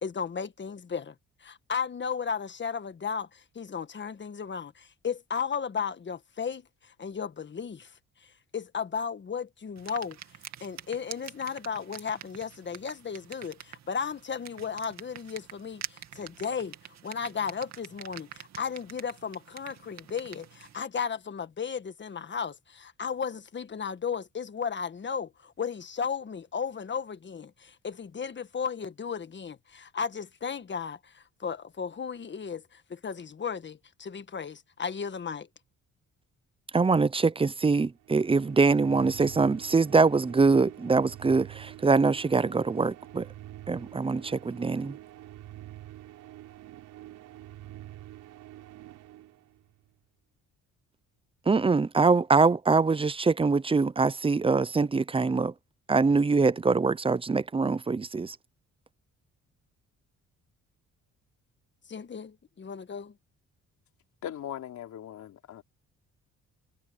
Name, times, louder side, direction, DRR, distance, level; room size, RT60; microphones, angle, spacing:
voice 1, 0.0-1.1 1.4-7.9 8.5-10.2 10.6-16.7 17.0-35.5 61.9-63.1, left 6 dB, 40° left, 1.6 m, -35 dB
sound 1, 9.8-20.8, right 9 dB, 65° right, 2.5 m, -46 dB
voice 2, 36.7-43.2 43.7-44.9 51.5-55.5 55.9-58.3, right 4 dB, 20° right, 0.6 m, -24 dB
sound 2, 38.0-49.9, right 14 dB, 90° right, 4.6 m, -47 dB
voice 3, 64.2-65.6, left 10 dB, 70° left, 3.4 m, -39 dB
cardioid pair, 90°, 30 cm